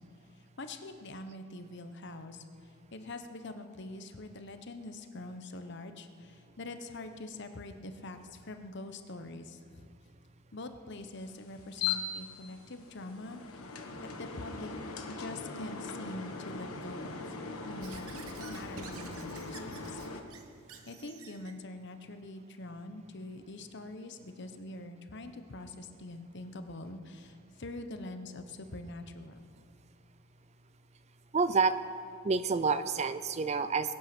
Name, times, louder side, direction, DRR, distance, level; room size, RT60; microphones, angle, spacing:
voice 1, 0.6-2.4 2.9-9.6 10.5-13.4 14.2-17.2 17.6-18.1 18.4-20.0 20.9-27.3 27.6-29.5, left 2 dB, 55° left, 8 dB, 1.0 m, -44 dB
sound 1, 11.2-20.2, left 5 dB, 80° left, 1.3 m, -40 dB
Squeak / Writing, 17.8-21.6, right 5 dB, 85° right, 1.2 m, -49 dB
voice 2, 31.3-31.8 32.2-33.9, right 4 dB, 30° right, 13 dB, 0.4 m, -28 dB
21.5 x 9.1 x 6.1 m, 2.3 s
head